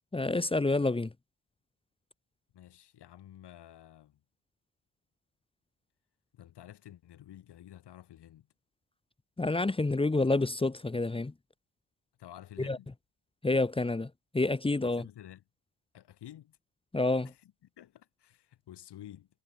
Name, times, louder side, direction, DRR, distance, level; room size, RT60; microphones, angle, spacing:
voice 1, 0.1-1.1 9.4-11.3 12.6-12.8 13.4-15.0 16.9-17.3, left 2 dB, 15° left, 1.4 m, -28 dB
voice 2, 2.5-4.2 6.3-8.5 12.2-12.9 14.8-15.4 15.9-16.6 17.2-19.3, left 12 dB, 70° left, 7.2 m, -51 dB
cardioid pair, 140°, 42 cm